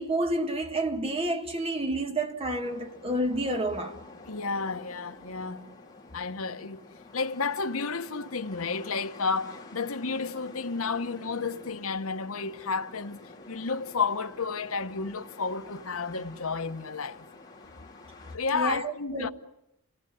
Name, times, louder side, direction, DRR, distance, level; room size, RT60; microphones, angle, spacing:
voice 1, 0.0-4.0 18.5-19.3, right 1 dB, 25° right, 1.7 m, -29 dB
sound 1, 2.6-18.4, left 2 dB, 15° left, 3.3 m, -49 dB
voice 2, 4.3-5.6 6.1-6.8 7.1-13.2 13.5-17.3 18.3-19.3, left 4 dB, 70° left, 1.1 m, -31 dB
29.5 x 18.0 x 9.9 m
head